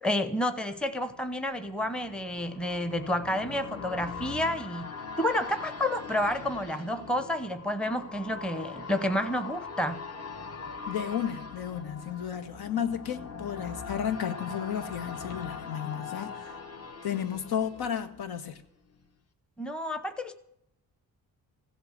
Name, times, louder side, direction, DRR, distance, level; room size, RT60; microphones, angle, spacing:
voice 1, 0.0-10.0 19.6-20.4, left 1 dB, 5° left, 0.8 m, -30 dB
sound 1, 0.8-18.6 19.0-19.1, left 4 dB, 40° left, 1.3 m, -42 dB
voice 2, 10.9-16.5 17.0-18.6, left 9 dB, 75° left, 1.5 m, -33 dB
15.5 x 8.0 x 8.9 m
wide cardioid pair, 160°, 37 cm